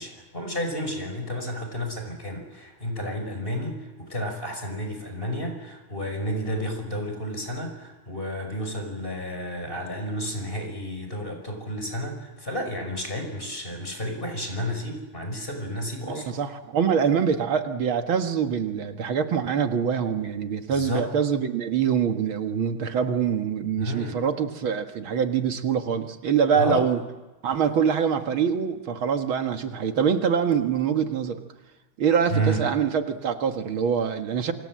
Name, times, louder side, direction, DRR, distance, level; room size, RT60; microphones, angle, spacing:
voice 1, 0.0-16.3 20.7-21.1 23.8-24.2 26.5-26.9 32.3-32.6, equal, 25° left, 4 dB, 6.0 m, -31 dB
voice 2, 16.1-27.0 27.4-31.4 32.0-34.5, right 7 dB, 75° right, 7 dB, 2.5 m, -24 dB
28.5 x 27.5 x 7.7 m, 1.1 s
omnidirectional pair, 2.2 m